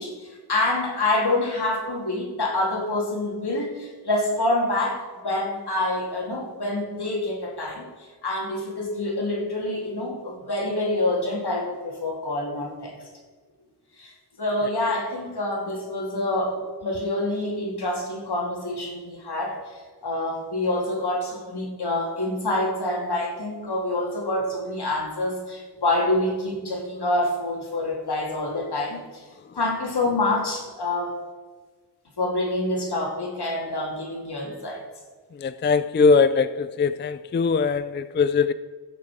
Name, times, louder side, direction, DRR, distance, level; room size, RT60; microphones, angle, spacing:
voice 1, 0.0-12.9 14.0-14.1 14.4-29.2 29.5-31.2 32.2-34.8, left 2 dB, 75° left, 2.6 m, -27 dB
voice 2, 35.4-38.5, left 5 dB, 30° left, 0.3 m, -21 dB
16.0 x 6.0 x 4.8 m
wide cardioid pair, 60°, 40 cm